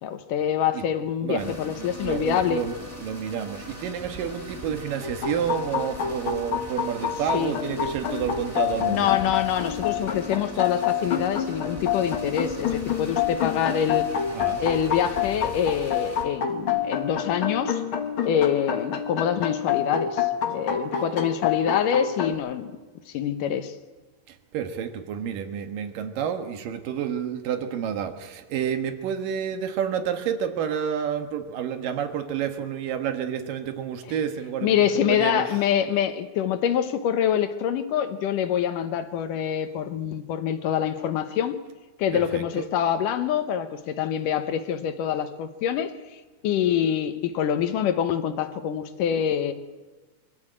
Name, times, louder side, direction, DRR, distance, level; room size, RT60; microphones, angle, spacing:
voice 1, 0.0-2.6 7.3-7.5 8.9-14.1 14.6-17.8 18.2-22.7 23.1-23.7 34.6-41.6 42.0-45.9 46.4-49.5, left 9 dB, 75° left, 9 dB, 2.6 m, -25 dB
voice 2, 1.2-9.2 14.3-14.6 20.9-21.0 24.3-35.5 42.1-42.7, right 8 dB, 80° right, 7 dB, 3.1 m, -30 dB
sound 1, 1.4-16.2, equal, 5° right, 3.7 m, -40 dB
sound 2, 5.0-22.3, left 8 dB, 50° left, 1.8 m, -28 dB
23.0 x 14.0 x 8.8 m, 1.3 s
omnidirectional pair, 3.9 m